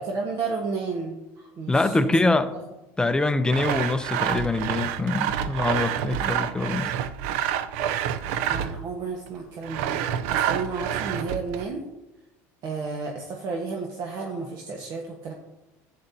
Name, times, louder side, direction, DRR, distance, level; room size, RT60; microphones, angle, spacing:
voice 1, 0.0-2.2 6.2-6.5 8.4-9.9 10.3-11.8 12.6-15.3, right 4 dB, 50° right, 1.3 m, -32 dB
voice 2, 1.7-2.5 3.0-6.9, left 2 dB, 10° left, 0.6 m, -24 dB
Sawing, 3.5-8.9 9.6-11.6, right 9 dB, 75° right, 0.6 m, -28 dB
11.5 x 8.9 x 2.8 m
supercardioid pair, 115°, 8 cm